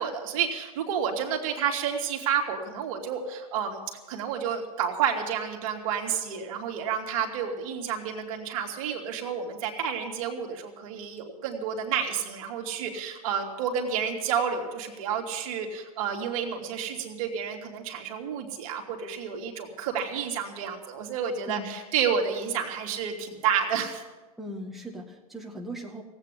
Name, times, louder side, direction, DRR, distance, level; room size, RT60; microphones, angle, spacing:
voice 1, 0.0-3.8 4.1-24.0, right 7 dB, 65° right, 2 dB, 2.4 m, -30 dB
voice 2, 21.5-21.8 24.4-26.0, equal, ahead, -1 dB, 2.0 m, -38 dB
16.5 x 8.7 x 9.8 m, 1.2 s
hypercardioid pair, 105°, 19 cm